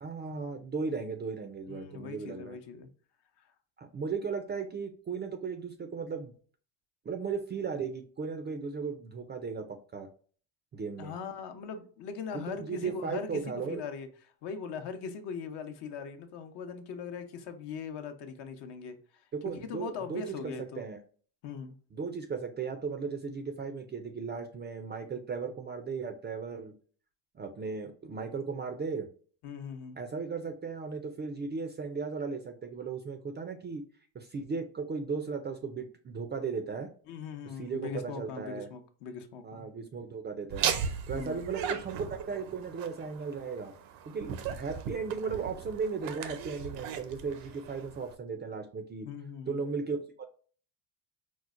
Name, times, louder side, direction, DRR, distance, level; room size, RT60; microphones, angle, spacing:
voice 1, 0.0-2.6 3.8-6.3 7.1-10.1 10.7-11.1 12.3-13.8 19.3-20.2 20.8-21.0 21.9-26.7 27.3-29.1 30.0-33.8 34.1-36.9 37.6-38.7 39.4-40.7 41.1-43.7 44.1-49.1 49.5-50.2, right 5 dB, 25° right, 0.3 m, -36 dB
voice 2, 1.7-2.9 11.0-13.4 13.7-14.1 14.4-19.0 19.4-20.8 21.4-21.7 29.4-30.0 37.1-39.7 41.1-41.4 49.0-49.6, left 6 dB, 60° left, 0.7 m, -40 dB
Laughter, 40.5-48.1, right 7 dB, 80° right, 0.6 m, -37 dB
4.4 x 2.1 x 2.4 m
supercardioid pair, 90°, 46 cm